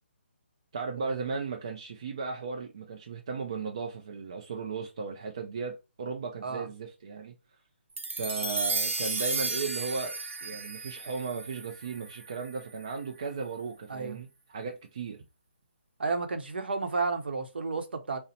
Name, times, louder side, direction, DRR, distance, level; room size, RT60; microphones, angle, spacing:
voice 1, 0.7-7.3 8.2-15.2, right 5 dB, 25° right, 0.3 m, -36 dB
sound 1, 8.0-12.5, right 3 dB, 85° right, 0.8 m, -33 dB
voice 2, 16.0-18.2, right 4 dB, 55° right, 0.7 m, -31 dB
4.1 x 2.0 x 4.0 m
hypercardioid pair, 175°, 7 cm